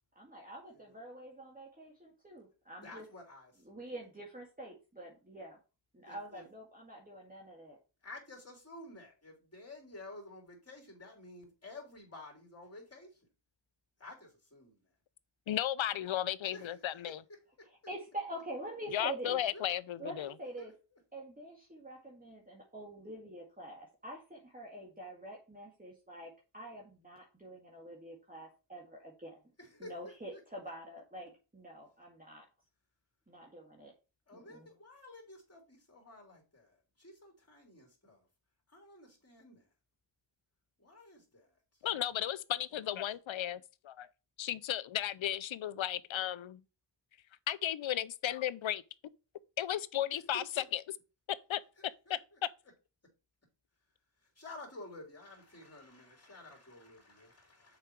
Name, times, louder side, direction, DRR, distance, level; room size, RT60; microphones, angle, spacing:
voice 1, 0.2-3.1 3.6-5.6 5.9-7.8 17.6-19.4 20.0-20.7 21.1-29.4 29.8-32.5 33.3-33.9 34.3-34.7, right 1 dB, 20° right, 2.0 m, -46 dB
voice 2, 2.8-3.8 6.1-6.4 8.0-13.2 14.0-14.9 16.5-17.7 19.5-19.7 20.6-21.0 29.6-30.4 34.3-38.2 38.7-39.7 40.8-41.8 42.7-43.0 50.1-50.7 51.8-52.2 54.2-57.8, left 2 dB, 30° left, 3.3 m, -52 dB
voice 3, 15.5-17.2 18.9-20.3 41.8-44.1 44.4-46.6 47.5-48.8 49.6-50.8 51.5-51.6 52.1-52.2, left 11 dB, 75° left, 0.6 m, -35 dB
6.5 x 5.0 x 4.6 m
cardioid pair, 45°, 47 cm